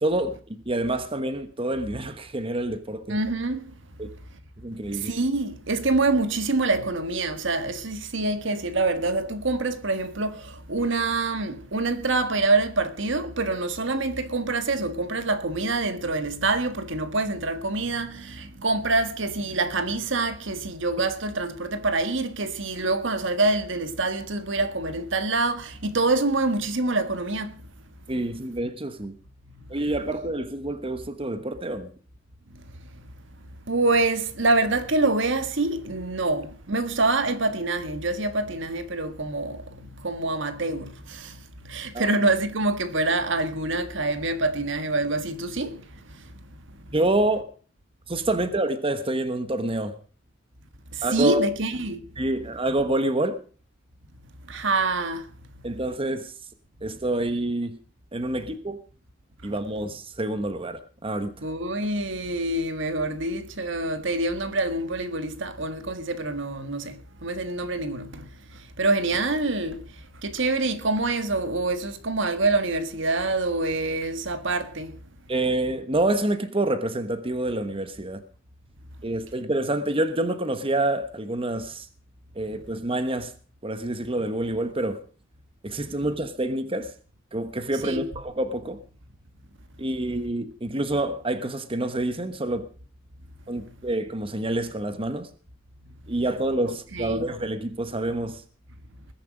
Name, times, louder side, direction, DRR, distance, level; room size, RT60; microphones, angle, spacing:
voice 1, 0.0-3.2 4.0-4.1 4.6-5.1 28.1-29.1 29.7-31.9 41.9-42.1 46.9-47.5 48.1-49.9 51.0-51.4 52.2-53.4 55.6-56.3 56.8-57.8 58.1-58.8 59.4-61.3 75.3-78.2 79.0-81.9 82.4-83.3 83.6-85.0 85.6-86.9 87.3-88.8 89.8-92.7 93.5-95.3 96.1-98.4, right 1 dB, 30° right, 1.2 m, -27 dB
voice 2, 3.1-3.6 4.9-27.5 33.7-39.6 40.0-41.3 41.7-45.8 51.1-52.0 54.5-55.2 61.4-68.3 68.8-69.8 70.2-74.9 87.8-88.2 96.9-97.3, right 2 dB, 65° right, 1.6 m, -26 dB
20.5 x 10.5 x 5.2 m
head